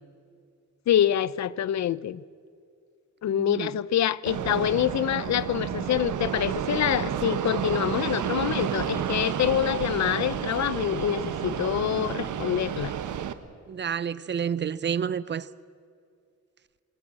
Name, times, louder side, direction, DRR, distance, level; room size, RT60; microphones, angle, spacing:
voice 1, 0.9-2.2 3.2-12.9, left 11 dB, 65° left, 0.6 m, -26 dB
voice 2, 3.3-3.7 13.7-15.5, right 7 dB, 35° right, 0.5 m, -29 dB
Fixed-wing aircraft airplane, 4.3-13.3, right 9 dB, 80° right, 1.2 m, -30 dB
sound 1, 8.3-13.3, left 2 dB, 35° left, 4.0 m, -51 dB
27.5 x 20.5 x 7.4 m
wide cardioid pair, 170°, 30 cm